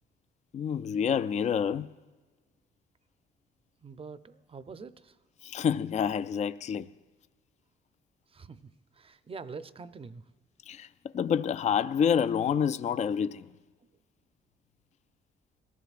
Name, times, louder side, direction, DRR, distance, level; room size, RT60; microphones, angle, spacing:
voice 1, 0.5-1.9 5.4-6.9 10.7-10.9 11.1-13.5, left 7 dB, 35° left, 0.4 m, -28 dB
voice 2, 3.8-5.2 8.3-10.2, right 4 dB, 30° right, 0.6 m, -45 dB
20.5 x 15.0 x 2.5 m
cardioid pair, 90°, 20 cm